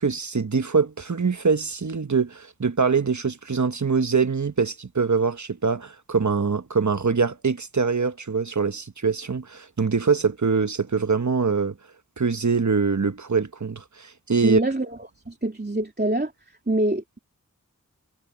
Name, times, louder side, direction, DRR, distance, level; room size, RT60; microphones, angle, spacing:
voice 1, 0.0-11.7 12.2-14.6, right 5 dB, 55° right, 1.1 m, -23 dB
voice 2, 14.4-15.0 15.3-16.3 16.7-17.2, right 1 dB, 30° right, 2.9 m, -25 dB
wide cardioid pair, 45°, 34 cm